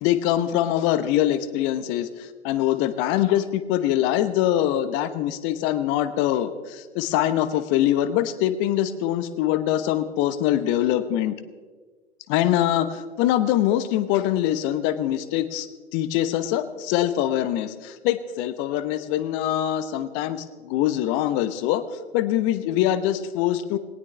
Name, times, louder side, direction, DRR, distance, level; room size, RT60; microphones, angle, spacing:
voice 1, 0.0-11.3 12.3-15.7 15.9-21.8 22.1-23.8, left 12 dB, 35° left, 13 dB, 1.0 m, -23 dB
20.0 x 18.5 x 3.3 m, 1.4 s
figure-of-eight pair, 100°, 33 cm